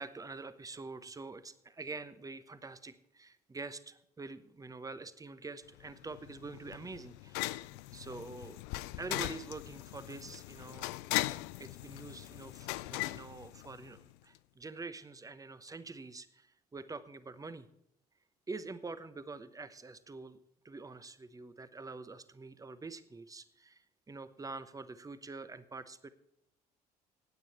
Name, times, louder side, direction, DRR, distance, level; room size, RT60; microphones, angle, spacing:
voice 1, 0.0-7.6 7.9-8.6 9.0-11.3 11.6-17.7 18.5-20.4 20.6-26.1, right 3 dB, 15° right, 13 dB, 1.0 m, -46 dB
sound 1, 5.8-14.1, left 19 dB, 60° left, 0.4 m, -39 dB
16.0 x 9.0 x 4.2 m, 0.80 s
figure-of-eight pair, 55°, 20 cm